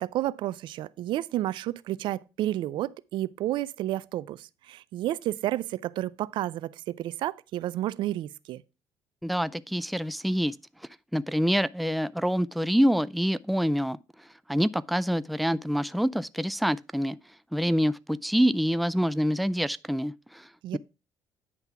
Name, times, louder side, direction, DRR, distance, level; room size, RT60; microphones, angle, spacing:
voice 1, 0.0-8.6 20.6-20.8, right 14 dB, 70° right, 0.4 m, -31 dB
voice 2, 9.2-10.6 11.1-17.2 17.5-20.8, equal, ahead, 0.4 m, -26 dB
9.8 x 3.5 x 5.7 m
supercardioid pair, 75°, 8 cm